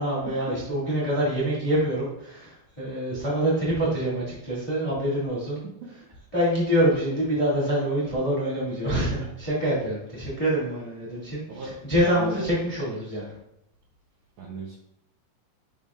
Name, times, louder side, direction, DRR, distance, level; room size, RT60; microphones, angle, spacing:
voice 1, 0.0-5.6 6.3-11.4 11.9-13.3, right 1 dB, 15° left, -6 dB, 1.5 m, -25 dB
voice 2, 11.5-12.4 14.4-14.7, right 3 dB, 75° right, -2 dB, 1.6 m, -37 dB
11.0 x 3.6 x 2.5 m, 0.78 s
omnidirectional pair, 4.4 m